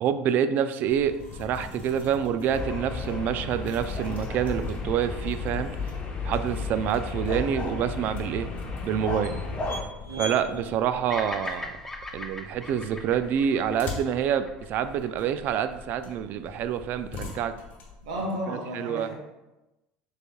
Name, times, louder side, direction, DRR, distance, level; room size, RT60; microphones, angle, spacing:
voice 1, 0.0-5.8 6.2-8.5 8.8-9.3 10.2-11.8 12.1-17.5 18.5-19.1, right 8 dB, 55° right, 11 dB, 0.3 m, -27 dB
sound 1, 0.8-18.2, left 4 dB, 50° left, 1.3 m, -43 dB
sound 2, 2.5-9.8, left 3 dB, 30° left, 0.9 m, -33 dB
voice 2, 10.0-10.7 18.0-19.1, right 1 dB, 90° right, -1 dB, 1.2 m, -34 dB
Bird vocalization bird call bird song, 11.1-15.4, left 2 dB, 10° left, 0.5 m, -39 dB
6.7 x 3.3 x 2.3 m, 1.0 s
supercardioid pair, 100°, 4 cm